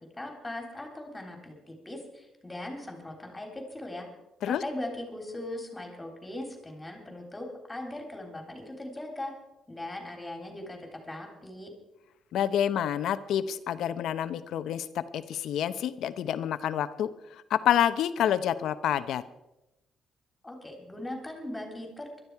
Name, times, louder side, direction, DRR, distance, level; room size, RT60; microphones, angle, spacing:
voice 1, 0.1-4.1 4.5-9.3 9.7-11.7 20.4-22.3, left 1 dB, 15° left, 3 dB, 3.5 m, -39 dB
voice 2, 12.3-19.2, left 10 dB, 75° left, 13 dB, 0.8 m, -28 dB
20.5 x 12.5 x 4.7 m, 0.93 s
cardioid pair, 90°, 0 cm